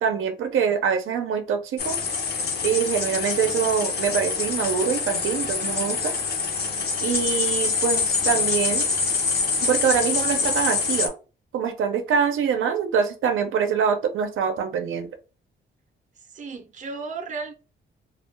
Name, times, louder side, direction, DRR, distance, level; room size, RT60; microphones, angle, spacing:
voice 1, 0.0-2.0 2.6-6.1 7.0-8.9 9.6-11.1 11.5-15.1, right 7 dB, 85° right, 0.5 m, -24 dB
sound 1, 1.8-11.1, left 5 dB, 55° left, 0.6 m, -25 dB
voice 2, 16.3-17.5, right 4 dB, 40° right, 0.5 m, -34 dB
2.3 x 2.2 x 3.1 m
wide cardioid pair, 145°, 20 cm